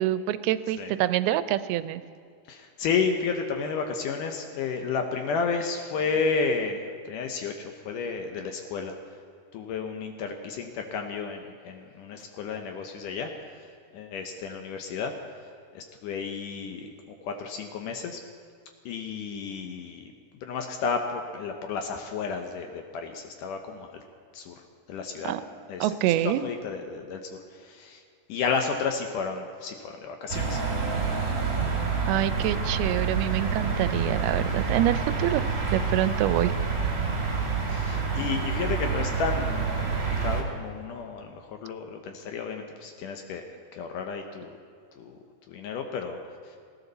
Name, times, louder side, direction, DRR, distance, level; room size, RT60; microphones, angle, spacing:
voice 1, 0.0-2.0 25.2-25.4 25.8-26.4 32.1-35.4 35.7-36.5, right 13 dB, 85° right, 13 dB, 2.5 m, -26 dB
voice 2, 2.5-7.5 7.9-9.0 9.5-13.3 13.9-15.1 15.7-16.9 17.2-18.2 18.9-20.1 20.4-24.0 24.3-24.5 24.9-25.3 25.7-27.2 27.6-28.0 28.3-30.6 37.7-43.4 43.7-44.6 45.0-45.2 45.5-46.2 46.5-46.6, left 5 dB, 70° left, 4 dB, 2.2 m, -32 dB
sound 1, 30.3-40.4, right 5 dB, 30° right, 1.9 m, -28 dB
19.5 x 16.5 x 4.1 m, 2.3 s
omnidirectional pair, 4.4 m